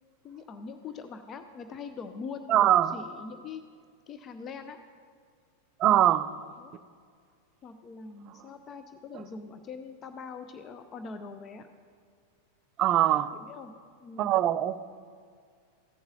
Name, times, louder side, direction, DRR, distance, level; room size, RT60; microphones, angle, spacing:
voice 1, 0.2-3.6 4.1-4.8 5.9-6.0 6.6-6.7 7.6-11.7 13.3-13.7 14.0-14.3, left 4 dB, 30° left, 8 dB, 0.5 m, -42 dB
voice 2, 2.5-3.0 5.8-6.3 12.8-13.3 14.2-14.8, right 12 dB, 35° right, 14 dB, 0.4 m, -22 dB
15.0 x 7.0 x 3.8 m, 2.1 s
figure-of-eight pair, 90°, 0 cm